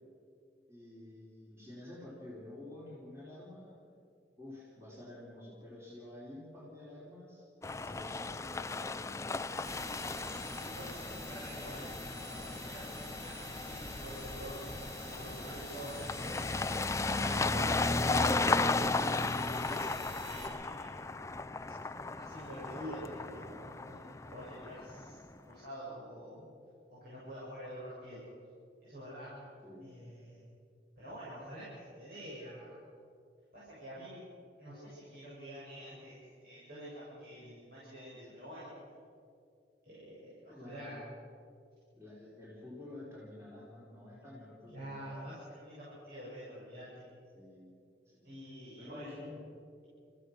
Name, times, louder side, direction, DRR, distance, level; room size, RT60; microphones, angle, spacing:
voice 1, 0.7-3.9 4.4-7.4 7.8-9.3 29.6-30.2 40.4-41.1 41.9-45.3 47.3-48.3 48.8-49.4, left 1 dB, 15° right, -6 dB, 4.3 m, -50 dB
sound 1, 7.6-25.3, left 3 dB, 15° left, 0.4 m, -35 dB
sound 2, 9.6-20.5, right 1 dB, 40° right, 5.3 m, -48 dB
voice 2, 10.5-11.9 12.3-12.9 13.2-14.7 15.0-16.8 17.1-18.5 19.2-19.9 20.2-20.9 22.1-25.2 25.5-26.5 26.9-28.2 28.8-29.5 29.8-30.4 31.0-32.8 33.5-34.2 34.6-38.7 39.8-41.0 44.7-47.1 48.2-49.2, equal, 55° right, -9 dB, 7.8 m, -47 dB
29.5 x 15.5 x 6.6 m, 2.4 s
head